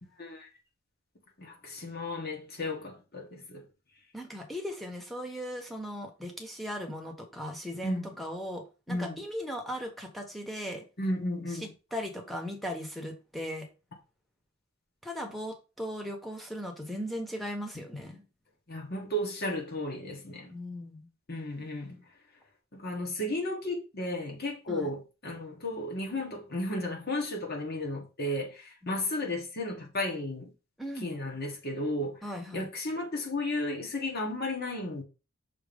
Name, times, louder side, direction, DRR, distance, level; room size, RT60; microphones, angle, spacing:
voice 1, 1.4-3.7 7.8-8.1 8.9-9.2 11.0-11.7 17.9-18.0 18.7-20.5 21.3-22.0 22.7-30.5 31.0-32.2 32.5-35.0, left 1 dB, 45° left, 1.8 m, -34 dB
voice 2, 4.1-10.8 11.6-13.7 15.0-18.2 20.5-21.1 24.7-24.9 28.8-28.9 30.8-31.1 32.2-32.7, equal, ahead, 1.2 m, -38 dB
6.4 x 3.0 x 5.3 m
head